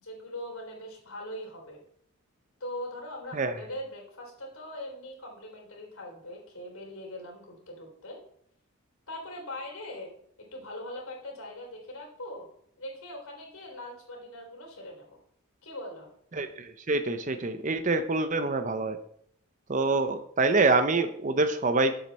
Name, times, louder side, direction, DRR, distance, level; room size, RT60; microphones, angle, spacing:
voice 1, 0.0-1.8 2.6-8.2 9.1-10.1 10.5-12.5 12.8-15.2 15.6-16.1, left 1 dB, 75° left, 0 dB, 3.6 m, -41 dB
voice 2, 16.3-19.0 19.7-22.0, right 3 dB, 35° right, 10 dB, 0.6 m, -26 dB
7.9 x 7.4 x 4.1 m, 0.65 s
head